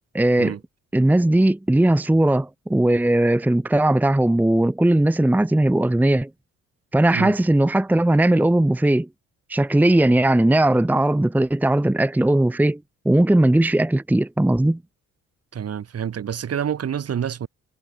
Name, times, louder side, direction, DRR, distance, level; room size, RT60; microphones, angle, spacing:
voice 1, 0.1-0.6 0.9-6.3 6.9-9.1 9.5-12.8 13.0-14.8, right 1 dB, 5° right, 0.8 m, -18 dB
voice 2, 15.5-17.5, right 8 dB, 55° right, 3.1 m, -27 dB
cardioid pair, 90°, 30 cm